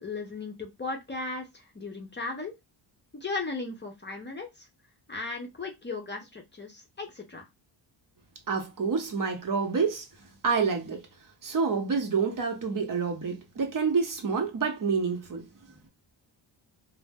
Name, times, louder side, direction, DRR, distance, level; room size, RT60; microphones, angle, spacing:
voice 1, 0.0-2.5 3.1-4.7 5.1-7.5, left 3 dB, 25° left, 0.6 m, -36 dB
voice 2, 8.5-10.0 10.4-11.0 11.4-15.4, right 5 dB, 45° right, 0.8 m, -28 dB
2.1 x 2.1 x 3.4 m
cardioid pair, 75°, 46 cm